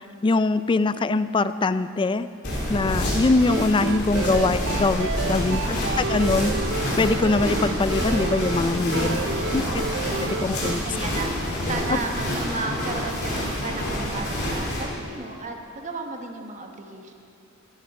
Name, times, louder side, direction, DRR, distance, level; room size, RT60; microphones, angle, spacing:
voice 1, 0.0-2.3 2.7-6.5 7.0-9.2 9.5-9.6 10.2-10.8 11.9-12.0, left 3 dB, 25° left, 14 dB, 0.3 m, -23 dB
sound 1, 2.4-14.8, equal, 55° left, 3.5 m, -27 dB
sound 2, 3.5-10.8, right 5 dB, 60° right, 0.5 m, -31 dB
sound 3, 4.1-8.8, left 1 dB, 40° left, 1.2 m, -39 dB
voice 2, 5.5-5.9 8.9-10.1 10.3-17.1, right 3 dB, 35° right, 3 dB, 1.1 m, -34 dB
16.5 x 9.4 x 5.7 m, 2.5 s
head